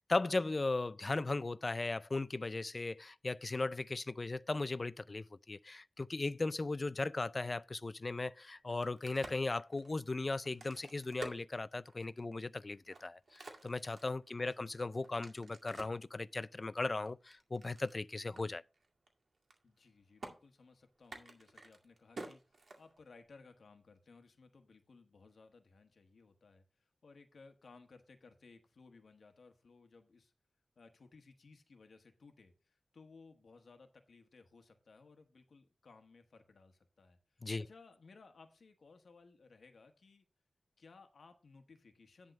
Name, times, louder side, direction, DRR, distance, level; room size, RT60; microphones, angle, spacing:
voice 1, 0.0-18.6 37.4-37.6, left 3 dB, 40° left, 0.4 m, -37 dB
Crack, 8.6-12.2 12.7-16.1 16.6-18.0 18.4-18.5 18.7-19.1 19.3-19.9 20.2-20.3 21.0-23.2, right 3 dB, 75° right, 2.1 m, -51 dB
voice 2, 19.6-30.3 30.8-40.2 40.8-42.3, left 4 dB, 90° left, 1.2 m, -60 dB
10.5 x 3.6 x 6.3 m
wide cardioid pair, 85°, 0 cm